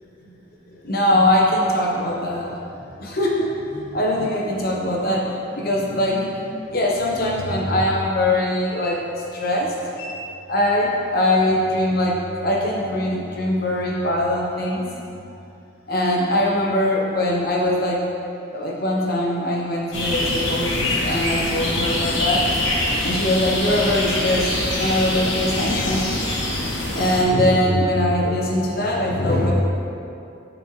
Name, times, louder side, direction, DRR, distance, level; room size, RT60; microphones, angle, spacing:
voice 1, 0.8-2.5 3.0-10.1 10.5-12.2 12.4-14.9 15.9-18.0 18.5-22.4 23.0-26.0 26.9-29.5, left 1 dB, 50° left, -2 dB, 1.0 m, -22 dB
sound 1, 19.9-27.2, left 1 dB, 75° left, 1.4 m, -24 dB
9.4 x 4.3 x 3.2 m, 2.7 s
head